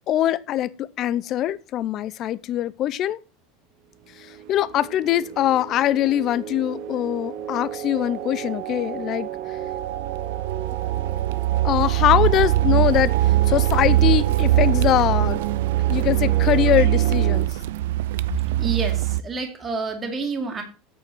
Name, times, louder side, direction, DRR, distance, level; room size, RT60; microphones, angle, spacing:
voice 1, 0.1-3.2 4.2-9.6 11.6-15.4 15.8-17.5, left 12 dB, 40° left, 0.6 m, -23 dB
sound 1, 4.1-17.5, right 10 dB, 60° right, 1.3 m, -33 dB
Car, 9.7-19.2, right 15 dB, 85° right, 0.5 m, -21 dB
voice 2, 18.6-20.6, right 4 dB, 20° right, 2.2 m, -28 dB
8.5 x 6.6 x 6.1 m
supercardioid pair, 135°, 0 cm